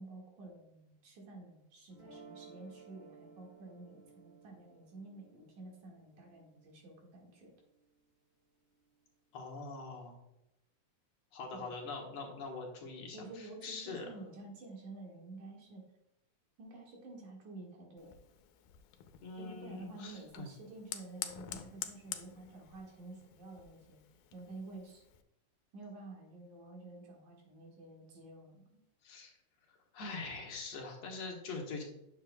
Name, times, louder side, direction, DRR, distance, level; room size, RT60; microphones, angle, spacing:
voice 1, 0.0-7.5 11.5-11.7 13.1-15.8 16.6-18.1 19.4-24.0 24.3-25.0 25.7-28.6, right 2 dB, 75° right, -1 dB, 3.3 m, -50 dB
sound 1, 1.9-8.0, right 5 dB, 40° right, 0.6 m, -58 dB
voice 2, 9.3-10.2 11.3-14.1 19.2-20.5 29.0-29.3 29.7-31.8, left 3 dB, 65° left, 0 dB, 2.3 m, -43 dB
Fire, 18.0-25.2, left 11 dB, 85° left, 2.1 m, -48 dB
9.5 x 7.0 x 2.2 m, 0.87 s
omnidirectional pair, 3.5 m